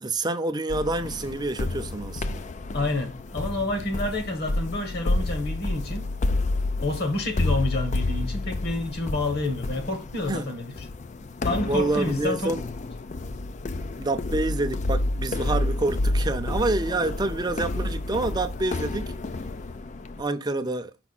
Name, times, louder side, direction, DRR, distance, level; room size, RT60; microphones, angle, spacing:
voice 1, 0.0-2.4 10.3-10.5 11.6-12.7 14.0-19.1 20.2-20.9, right 2 dB, 20° right, 0.6 m, -27 dB
sound 1, 0.7-20.2, left 2 dB, 35° left, 0.4 m, -29 dB
voice 2, 2.7-6.1 6.8-10.9 11.4-12.6, left 2 dB, 55° left, 1.8 m, -29 dB
5.9 x 5.3 x 4.2 m
head